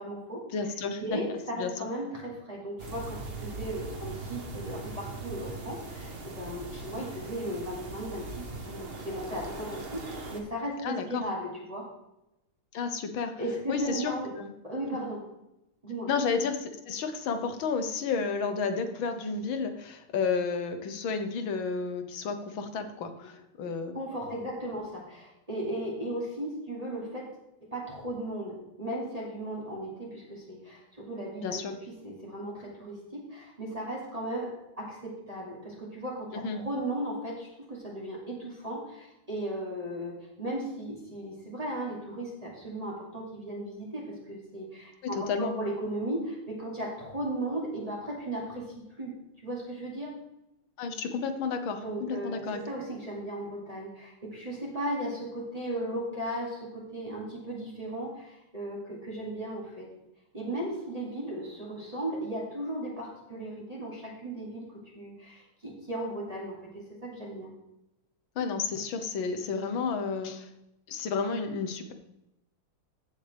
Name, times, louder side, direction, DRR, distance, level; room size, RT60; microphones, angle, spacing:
voice 1, 0.0-0.4 0.9-11.9 13.4-14.3 14.6-15.3 15.8-16.1 23.2-23.3 23.9-27.3 27.6-49.2 49.4-50.1 51.8-59.9 60.3-67.5, right 1 dB, 15° right, -4 dB, 2.5 m, -36 dB
voice 2, 0.5-1.7 10.8-11.2 12.7-13.4 13.7-14.5 16.1-24.0 31.4-31.8 36.4-36.6 45.0-45.5 50.8-52.6 68.4-70.5 70.9-71.9, left 5 dB, 70° left, 8 dB, 1.8 m, -31 dB
sound 1, 2.8-10.4, right 2 dB, 35° right, 1.2 m, -40 dB
15.0 x 7.1 x 3.4 m, 0.88 s
omnidirectional pair, 2.4 m